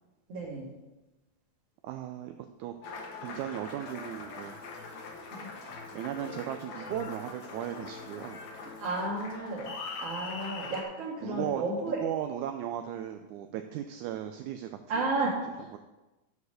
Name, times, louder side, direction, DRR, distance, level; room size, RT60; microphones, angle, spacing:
voice 1, 0.3-0.7 5.3-5.5 8.8-9.7 10.0-12.0 14.9-15.8, right 2 dB, 50° right, -7 dB, 2.8 m, -33 dB
voice 2, 1.8-2.3 2.6-2.8 3.2-4.6 5.9-8.4 11.2-14.8, right 11 dB, 80° right, 6 dB, 1.9 m, -36 dB
Applause, 2.8-10.8, left 4 dB, 65° left, 2.5 m, -42 dB
13.0 x 4.8 x 6.4 m, 1.1 s
omnidirectional pair, 3.7 m